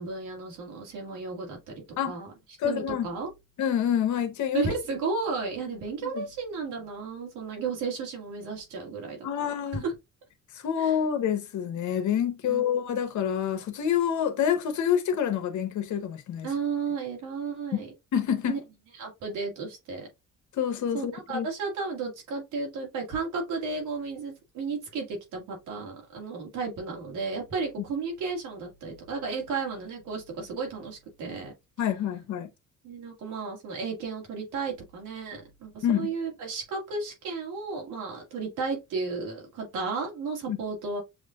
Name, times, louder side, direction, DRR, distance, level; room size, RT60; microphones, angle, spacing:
voice 1, 0.0-1.7 2.1-2.3 2.6-3.3 4.5-9.9 10.8-11.0 12.5-12.6 16.4-17.9 18.5-18.6 18.9-20.1 20.9-31.5 32.8-41.0, right 4 dB, 90° right, 2.0 m, -33 dB
voice 2, 2.6-3.1 3.6-4.7 6.0-6.2 9.2-9.8 10.5-16.5 17.7-17.8 18.1-18.6 20.6-21.5 31.8-32.5 35.8-36.1 40.5-40.6, left 9 dB, 70° left, 0.9 m, -27 dB
7.0 x 2.5 x 2.4 m
cardioid pair, 90°, 30 cm